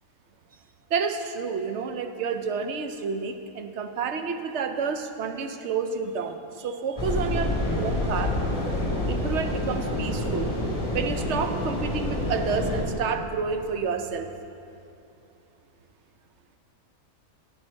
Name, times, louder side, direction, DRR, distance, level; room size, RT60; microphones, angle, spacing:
voice 1, 0.9-8.4 9.1-10.5 10.9-14.3, right 5 dB, 60° right, 7 dB, 0.8 m, -30 dB
sound 1, 7.0-12.8, left 1 dB, 20° left, 1.7 m, -27 dB
10.5 x 8.6 x 5.2 m, 2.7 s
omnidirectional pair, 1.6 m